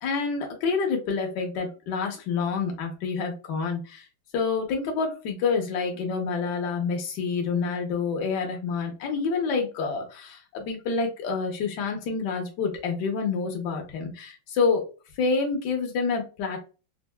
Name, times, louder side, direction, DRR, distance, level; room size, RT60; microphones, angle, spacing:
voice 1, 0.0-4.0 4.3-14.8 15.2-16.6, left 4 dB, 65° left, 2 dB, 1.4 m, -28 dB
4.4 x 2.5 x 2.2 m, 0.33 s
omnidirectional pair, 2.2 m